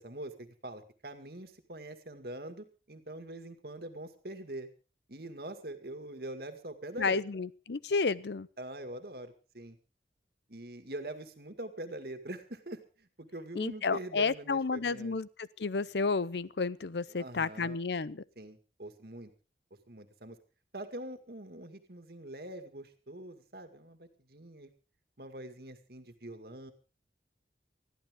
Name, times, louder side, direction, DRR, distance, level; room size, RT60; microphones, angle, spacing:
voice 1, 0.0-4.7 5.1-7.2 8.6-9.8 10.5-15.2 17.1-17.8 18.4-19.3 19.9-20.4 20.7-24.7 25.2-26.7, right 1 dB, 60° right, 8 dB, 2.1 m, -44 dB
voice 2, 7.0-8.5 13.6-18.2, left 4 dB, 75° left, 19 dB, 0.7 m, -31 dB
20.5 x 14.0 x 3.7 m, 0.34 s
head